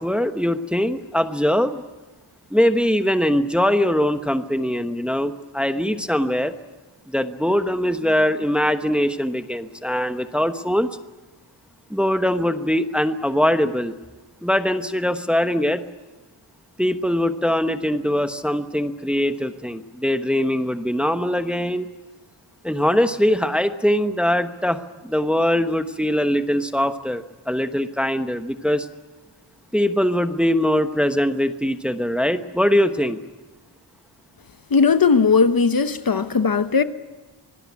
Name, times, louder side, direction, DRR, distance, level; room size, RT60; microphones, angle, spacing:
voice 1, 0.0-1.8 2.5-6.5 7.1-10.9 11.9-13.9 14.4-15.8 16.8-21.9 22.6-28.9 29.7-33.2, equal, ahead, 1.1 m, -22 dB
voice 2, 34.7-36.8, left 5 dB, 45° left, 1.0 m, -18 dB
25.5 x 20.0 x 9.7 m
wide cardioid pair, 165°, 48 cm